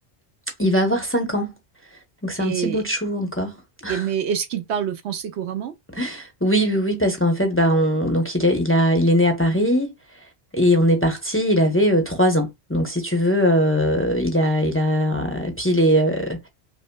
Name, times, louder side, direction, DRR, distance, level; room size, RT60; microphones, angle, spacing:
voice 1, 0.6-1.5 2.2-3.6 3.8-4.0 5.9-9.9 10.5-16.5, equal, 15° left, 0.7 m, -20 dB
voice 2, 2.4-2.8 3.9-5.7, right 8 dB, 80° right, 0.9 m, -26 dB
5.4 x 2.0 x 2.2 m
omnidirectional pair, 1.1 m